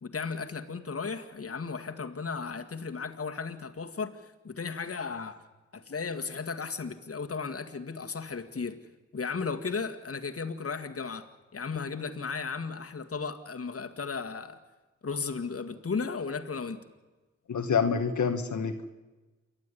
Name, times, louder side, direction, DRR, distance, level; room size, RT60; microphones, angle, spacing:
voice 1, 0.0-4.1 4.4-5.4 5.7-8.8 9.1-14.6 15.0-16.8, left 5 dB, 50° left, 6 dB, 2.0 m, -35 dB
voice 2, 17.5-18.8, left 6 dB, 80° left, 5 dB, 1.4 m, -27 dB
28.5 x 12.0 x 9.9 m, 1.2 s
cardioid pair, 70°, 29 cm